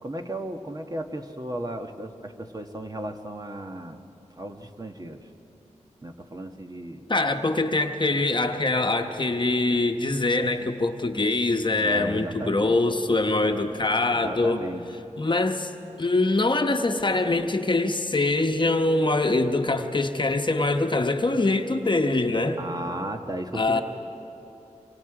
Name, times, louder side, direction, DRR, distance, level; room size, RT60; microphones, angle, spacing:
voice 1, 0.0-4.0 4.4-5.2 6.0-7.0 11.8-12.8 14.1-14.8 22.6-23.8, right 1 dB, 30° right, 4 dB, 1.4 m, -34 dB
voice 2, 7.1-14.6 15.2-15.7 16.0-22.6 23.5-23.8, left 2 dB, 40° left, 5 dB, 1.1 m, -23 dB
26.0 x 25.5 x 4.9 m, 2.9 s
cardioid pair, 60°, 13 cm